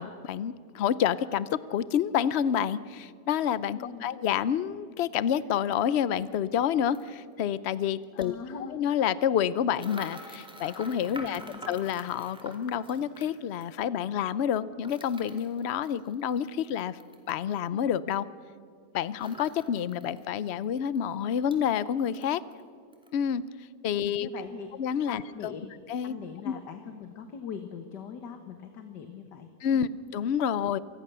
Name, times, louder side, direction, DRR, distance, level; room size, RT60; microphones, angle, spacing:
voice 1, 0.0-8.3 8.7-17.0 17.3-18.3 18.9-22.4 23.1-23.4 23.8-24.3 24.8-25.5 25.9-26.1 26.4-26.5 29.6-30.8, left 9 dB, 60° left, 17 dB, 0.7 m, -28 dB
voice 2, 3.7-4.1 8.1-8.8 11.2-11.6 19.1-19.2 23.9-24.7 25.1-25.8 26.0-29.9, left 7 dB, 90° left, 7 dB, 1.9 m, -42 dB
sound 1, 6.1-6.2 6.9-7.1 8.0-8.3 9.7-13.7 14.8-17.4 19.2-20.2 20.6-20.7 20.9-21.6 22.0-22.6 22.9-23.1, equal, 5° right, 2.7 m, -47 dB
27.0 x 20.0 x 6.8 m, 2.2 s
omnidirectional pair, 1.8 m